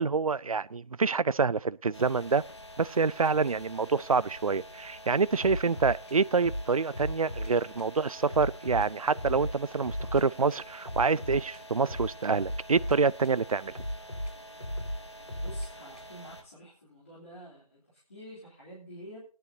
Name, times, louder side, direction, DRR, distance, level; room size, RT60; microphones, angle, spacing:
voice 1, 0.0-2.4 2.8-13.7, right 4 dB, 65° right, 0.5 m, -27 dB
sound 1, 1.9-16.4, equal, 45° left, 1.9 m, -48 dB
sound 2, 5.4-7.5 7.8-7.9 8.3-10.2 10.5-13.4 13.7-16.3, equal, 80° left, 4.8 m, -37 dB
voice 2, 15.4-19.2, equal, 20° left, 3.0 m, -48 dB
18.0 x 10.5 x 2.7 m
figure-of-eight pair, 175°, 20 cm